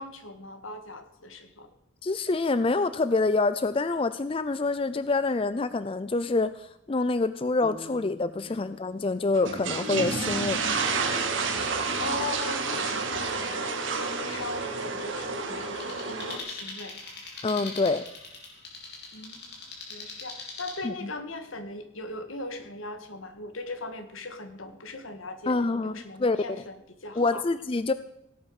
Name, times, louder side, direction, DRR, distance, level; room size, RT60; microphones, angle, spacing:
voice 1, 0.0-1.7 8.5-8.6 10.2-11.1 12.0-17.0 19.1-19.5 19.9-25.6 25.8-27.5 27.7-27.9, left 2 dB, 80° left, 8 dB, 2.0 m, -39 dB
voice 2, 2.0-10.6 17.4-18.0 20.8-21.1 25.5-26.4 27.2-27.9, left 3 dB, 25° left, 13 dB, 0.4 m, -26 dB
sound 1, 7.6-10.8, left 2 dB, 5° left, 1.7 m, -49 dB
sound 2, 9.3-16.4, right 4 dB, 70° right, 2.0 m, -30 dB
sound 3, 15.8-20.8, left 3 dB, 50° left, 4.1 m, -41 dB
17.0 x 8.4 x 6.5 m, 0.80 s
head